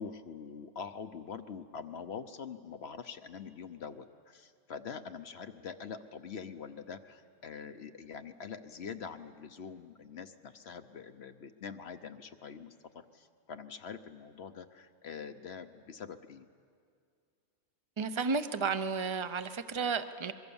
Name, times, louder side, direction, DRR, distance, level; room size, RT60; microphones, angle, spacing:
voice 1, 0.0-16.5, left 6 dB, 55° left, 9 dB, 0.9 m, -44 dB
voice 2, 18.0-20.3, right 5 dB, 25° right, 11 dB, 0.6 m, -32 dB
23.5 x 23.0 x 7.1 m, 2.3 s
omnidirectional pair, 1.5 m